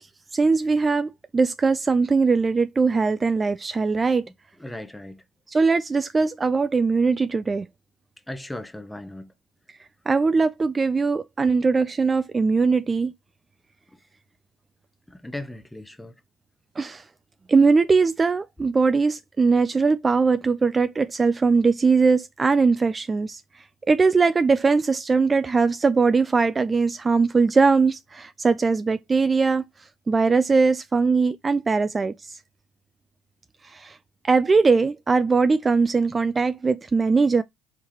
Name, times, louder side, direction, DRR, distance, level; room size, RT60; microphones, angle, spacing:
voice 1, 0.3-4.3 5.5-7.7 10.1-13.1 16.8-17.0 17.5-23.4 23.9-29.6 30.1-32.4 33.6-34.0 34.2-37.4, right 4 dB, 25° right, 0.3 m, -20 dB
voice 2, 4.6-5.2 8.3-9.3 15.1-16.1, left 1 dB, 5° left, 0.7 m, -37 dB
4.4 x 3.6 x 2.9 m
hypercardioid pair, 75°, 0 cm